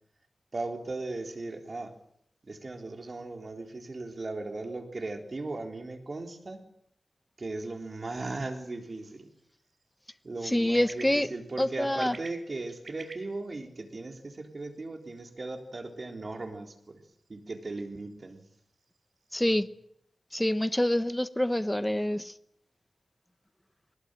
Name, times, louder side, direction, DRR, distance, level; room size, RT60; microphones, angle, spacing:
voice 1, 0.5-2.0 2.4-6.6 7.4-9.3 10.2-17.0 17.3-18.5, right 2 dB, 45° right, 4 dB, 3.7 m, -37 dB
sound 1, 7.9-19.6, right 3 dB, 60° right, 4.1 m, -55 dB
voice 2, 10.5-11.3 11.6-12.1 19.3-19.7 20.3-22.3, left 1 dB, 10° left, 13 dB, 1.0 m, -26 dB
21.0 x 19.5 x 9.1 m, 0.73 s
wide cardioid pair, 105°, 0 cm